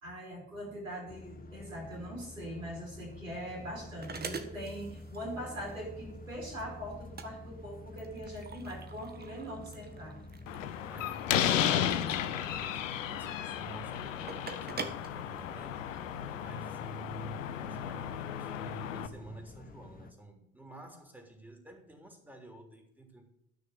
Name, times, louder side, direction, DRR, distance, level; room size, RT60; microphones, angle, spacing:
voice 1, 0.0-10.2, equal, 85° right, 3.0 m, -42 dB
sound 1, 1.1-20.1, left 2 dB, 20° left, 1.1 m, -50 dB
sound 2, 2.8-16.1, right 4 dB, 25° right, 1.4 m, -46 dB
Slam, 10.5-19.1, left 10 dB, 75° left, 0.9 m, -34 dB
voice 2, 10.9-23.3, right 2 dB, 5° right, 3.5 m, -50 dB
13.5 x 6.5 x 7.8 m
figure-of-eight pair, 60°, 39 cm